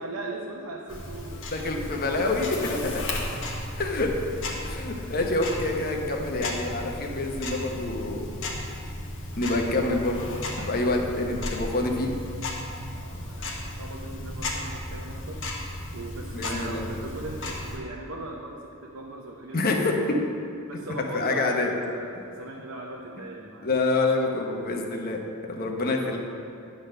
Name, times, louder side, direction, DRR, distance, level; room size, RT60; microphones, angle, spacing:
voice 1, 0.0-2.5 2.9-3.4 4.9-5.1 6.4-6.8 12.9-15.4 15.9-19.8 20.6-23.7 25.9-26.2, right 2 dB, 70° right, -2 dB, 0.7 m, -39 dB
Tick-tock, 0.9-17.8, left 1 dB, 65° left, 1.2 m, -35 dB
voice 2, 1.5-3.2 3.7-4.1 4.6-8.3 9.4-10.3 10.7-12.1 16.3-16.9 19.5-19.9 21.1-21.7 23.6-26.2, left 2 dB, 45° left, 1 dB, 0.9 m, -27 dB
9.9 x 4.1 x 6.5 m, 2.6 s
head